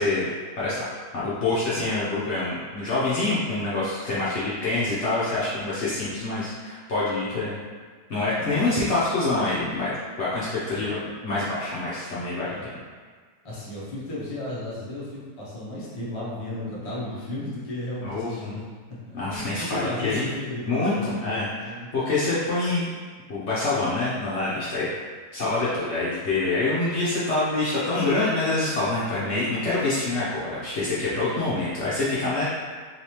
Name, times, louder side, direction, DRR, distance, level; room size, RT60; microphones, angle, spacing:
voice 1, 0.0-7.6 8.1-9.9 10.2-12.8 18.0-18.5 19.1-20.2 20.6-22.9 23.3-24.9 25.3-32.4, left 2 dB, 55° left, -9 dB, 0.9 m, -26 dB
voice 2, 4.0-4.4 8.3-8.8 10.7-10.9 12.5-12.7 13.4-18.6 19.1-21.9 24.9-25.0, left 1 dB, 30° left, -7 dB, 0.7 m, -35 dB
3.2 x 3.1 x 2.9 m, 1.5 s
omnidirectional pair, 1.7 m